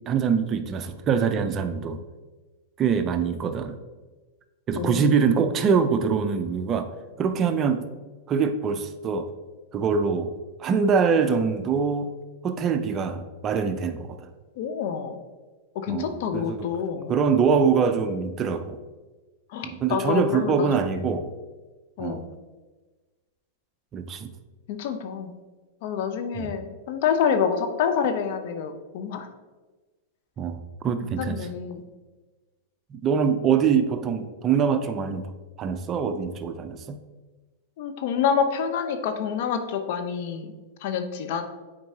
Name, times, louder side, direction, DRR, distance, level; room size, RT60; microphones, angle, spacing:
voice 1, 0.1-2.0 2.8-3.8 4.7-6.9 7.2-7.8 8.3-9.3 9.7-12.1 12.4-14.3 15.9-16.7 17.1-18.8 19.6-21.3 22.0-22.2 23.9-24.3 26.3-26.5 30.4-30.6 30.8-31.5 32.9-35.3 35.6-37.0, right 6 dB, 30° right, 9 dB, 0.5 m, -24 dB
voice 2, 4.7-5.1 14.6-15.2 15.7-17.1 19.5-21.0 22.0-22.3 24.7-25.4 25.8-29.3 31.2-31.8 37.8-40.5 40.8-41.4, left 7 dB, 60° left, 7 dB, 0.7 m, -27 dB
7.4 x 4.6 x 2.8 m, 1.3 s
hypercardioid pair, 110°, 0 cm